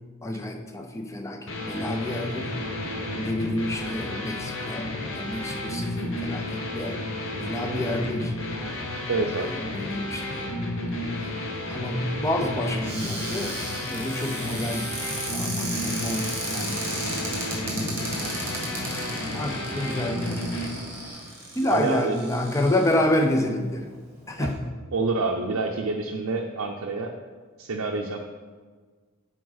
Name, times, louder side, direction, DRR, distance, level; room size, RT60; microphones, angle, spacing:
voice 1, 0.2-2.6 3.2-8.3 9.3-10.6 11.2-13.6 13.9-16.9 17.7-18.0 19.3-20.4 21.5-23.9 24.3-24.6, left 1 dB, 15° left, 3 dB, 0.5 m, -29 dB
sound 1, 1.5-20.7, left 1 dB, 70° left, 1.1 m, -32 dB
voice 2, 9.1-9.5 21.7-22.2 24.4-24.5 24.9-27.1 27.6-28.2, right 3 dB, 85° right, 1 dB, 0.5 m, -27 dB
Cupboard open or close, 12.8-23.2 23.8-23.9 24.2-24.5, right 1 dB, 10° right, 1.5 m, -35 dB
7.6 x 4.9 x 4.0 m, 1.5 s
head